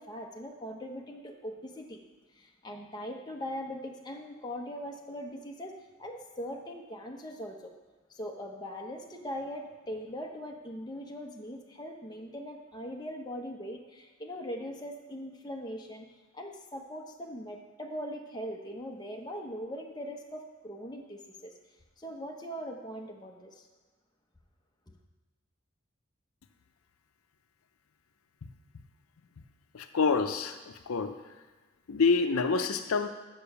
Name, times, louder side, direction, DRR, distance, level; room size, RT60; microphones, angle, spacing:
voice 1, 0.0-2.0 2.4-7.7 8.1-16.1 16.3-21.5 22.0-23.7, equal, 20° left, 1 dB, 0.8 m, -41 dB
voice 2, 29.7-31.1 31.9-33.1, left 4 dB, 90° left, 8 dB, 0.6 m, -27 dB
7.0 x 5.4 x 6.9 m, 1.3 s
head